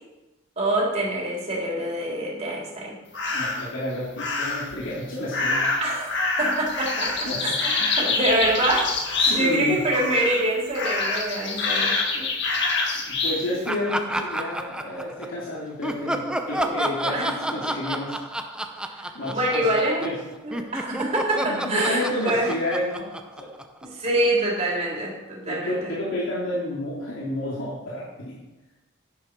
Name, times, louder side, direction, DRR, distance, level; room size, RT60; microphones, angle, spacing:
voice 1, 0.6-3.0 5.8-7.5 8.0-8.9 9.4-12.0 17.0-17.3 18.9-20.1 20.4-22.5 23.8-25.9, right 1 dB, 30° right, -4 dB, 3.8 m, -25 dB
sound 1, 3.1-3.7 4.2-4.7 5.3-9.6 9.9-10.4 10.7-13.4, left 3 dB, 60° left, 1.9 m, -26 dB
voice 2, 3.3-5.7 7.2-7.6 8.0-8.1 9.2-9.9 12.1-12.3 12.9-18.2 19.1-19.7 20.0-20.2 21.4-23.5 25.5-28.3, left 1 dB, 75° left, -7 dB, 2.9 m, -30 dB
Laughter, 13.7-15.4 15.8-20.2 20.5-24.1, right 1 dB, 5° right, 0.6 m, -30 dB
10.5 x 10.5 x 4.6 m, 1.1 s
head